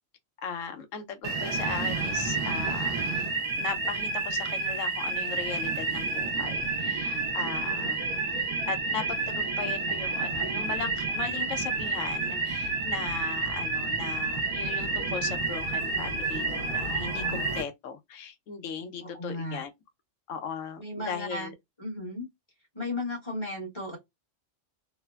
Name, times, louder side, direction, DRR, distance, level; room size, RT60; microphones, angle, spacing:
voice 1, 0.4-8.1 8.7-19.7 20.3-21.5, left 6 dB, 80° left, 1.0 m, -38 dB
sound 1, 1.2-17.6, right 3 dB, 90° right, 1.2 m, -30 dB
voice 2, 17.1-17.4 19.0-19.6 20.8-21.5 21.8-22.3 22.7-24.0, left 2 dB, 25° left, 1.0 m, -35 dB
3.1 x 2.1 x 2.2 m
omnidirectional pair, 1.3 m